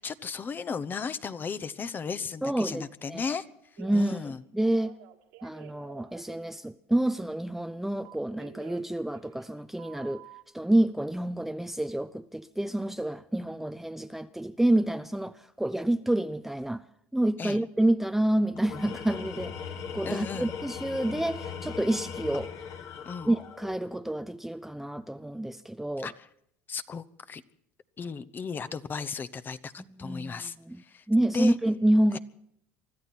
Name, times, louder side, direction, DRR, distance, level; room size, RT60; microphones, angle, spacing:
voice 1, 0.0-3.4 3.9-4.4 17.4-17.6 20.0-20.5 23.0-23.3 26.0-26.1 26.7-27.4 28.0-30.5 30.9-31.0 31.3-31.5, left 5 dB, 30° left, 1.0 m, -35 dB
voice 2, 2.4-3.4 3.8-5.0 5.4-10.2 10.5-16.8 17.1-22.5 23.2-26.1 29.9-32.2, right 1 dB, 5° right, 0.6 m, -28 dB
Telephone, 3.8-4.3 4.6-6.4 8.0-9.5 9.8-10.4, right 12 dB, 80° right, 2.6 m, -50 dB
Tools, 18.5-23.9, left 7 dB, 55° left, 1.9 m, -39 dB
24.5 x 13.5 x 4.4 m
supercardioid pair, 100°, 7 cm